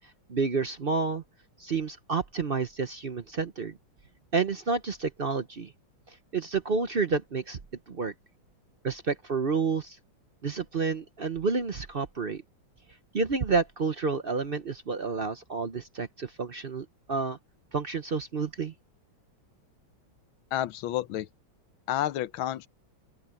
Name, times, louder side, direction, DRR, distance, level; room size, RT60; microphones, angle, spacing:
voice 1, 0.3-1.2 1.6-3.8 4.3-5.7 6.3-7.6 7.9-8.1 8.8-10.0 10.4-12.4 13.1-17.4 17.7-18.7, right 4 dB, 55° right, 0.6 m, -29 dB
voice 2, 20.5-21.3 21.9-22.7, left 12 dB, 80° left, 1.6 m, -30 dB
open air
omnidirectional pair, 2.2 m